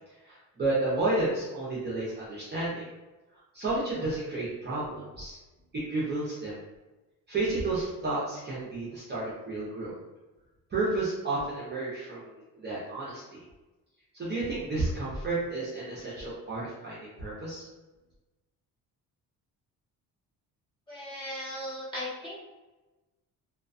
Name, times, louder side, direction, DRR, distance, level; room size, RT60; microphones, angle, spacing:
voice 1, 0.2-2.8 3.5-5.4 5.7-6.5 7.3-9.9 10.7-13.4 14.1-17.6, right 2 dB, 30° right, -8 dB, 0.7 m, -31 dB
voice 2, 20.9-22.4, left 1 dB, 15° left, -11 dB, 1.4 m, -37 dB
2.3 x 2.2 x 2.5 m, 1.1 s
cardioid pair, 125°, 36 cm